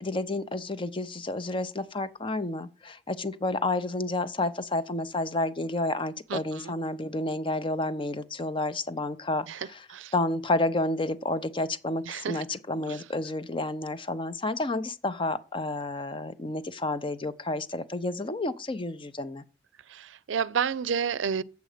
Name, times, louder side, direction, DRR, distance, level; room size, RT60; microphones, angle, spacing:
voice 1, 0.0-9.9 10.1-19.4, left 2 dB, 25° left, 0.6 m, -30 dB
voice 2, 6.3-6.7 9.5-10.1 12.1-12.4 12.9-13.0 19.9-21.4, right 7 dB, 85° right, 0.5 m, -31 dB
8.1 x 7.7 x 5.0 m
head